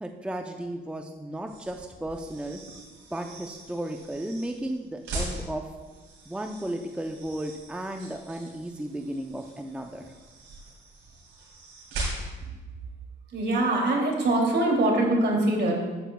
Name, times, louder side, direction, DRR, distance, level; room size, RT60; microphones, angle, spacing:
voice 1, 0.0-2.6 3.1-5.7 6.3-10.1, right 1 dB, 5° right, 4 dB, 0.6 m, -34 dB
sound 1, 1.4-12.6, right 2 dB, 90° right, 3.2 m, -40 dB
voice 2, 13.3-15.7, right 2 dB, 60° right, 0 dB, 2.7 m, -23 dB
14.0 x 9.1 x 2.3 m, 1.3 s
cardioid pair, 90°, 20 cm